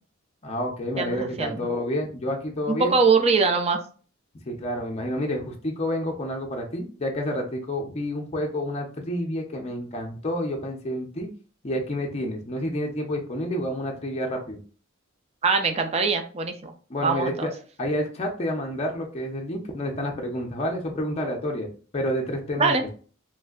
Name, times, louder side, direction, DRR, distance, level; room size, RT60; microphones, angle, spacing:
voice 1, 0.4-2.9 4.4-11.3 11.6-14.6 16.9-17.5 17.8-21.7 21.9-22.9, left 1 dB, 30° left, 1 dB, 0.5 m, -29 dB
voice 2, 1.0-1.7 2.8-3.8 15.4-16.7 17.0-17.5 22.6-22.8, right 4 dB, 30° right, 5 dB, 0.4 m, -22 dB
3.2 x 2.6 x 2.3 m, 0.39 s
head